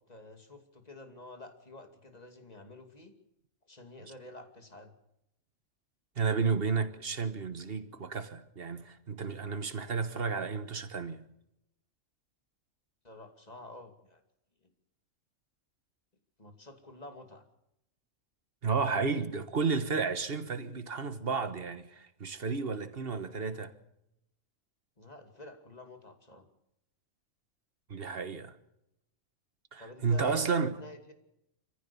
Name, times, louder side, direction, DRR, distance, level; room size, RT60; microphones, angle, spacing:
voice 1, 0.1-3.1 3.7-4.9 10.1-10.2 13.0-14.2 14.6-14.7 16.4-17.4 25.0-26.5 29.8-31.1, left 2 dB, 30° left, 2.6 m, -49 dB
voice 2, 6.2-11.2 18.6-23.7 27.9-28.5 29.7-30.7, right 5 dB, 45° right, 1.5 m, -32 dB
26.5 x 15.0 x 7.0 m
omnidirectional pair, 1.4 m